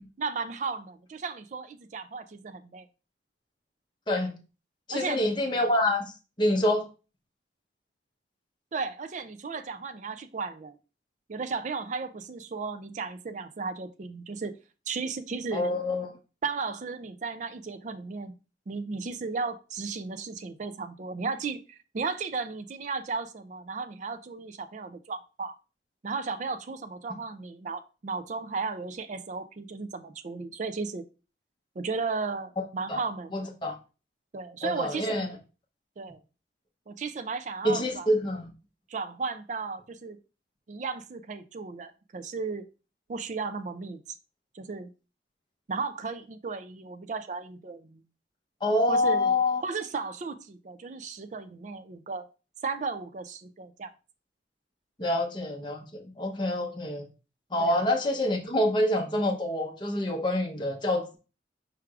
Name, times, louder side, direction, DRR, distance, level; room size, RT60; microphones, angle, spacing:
voice 1, 0.2-2.9 4.9-5.3 8.7-10.8 11.3-14.5 14.9-15.8 16.4-18.3 18.7-25.5 26.0-31.0 31.8-33.4 34.3-35.3 36.0-36.2 36.9-38.1 38.9-40.2 40.7-42.6 43.1-44.0 44.5-44.9 45.7-48.0 48.9-49.3 49.6-52.3 52.6-53.9 55.0-55.1 57.6-57.8, right 4 dB, 40° right, 0.4 m, -35 dB
voice 2, 4.9-6.1 6.4-6.9 15.5-16.2 32.9-33.0 33.3-33.7 34.6-35.3 37.6-38.5 48.6-49.6 55.0-57.0 57.5-61.2, left 1 dB, 25° left, 0.8 m, -26 dB
4.7 x 4.6 x 2.4 m
head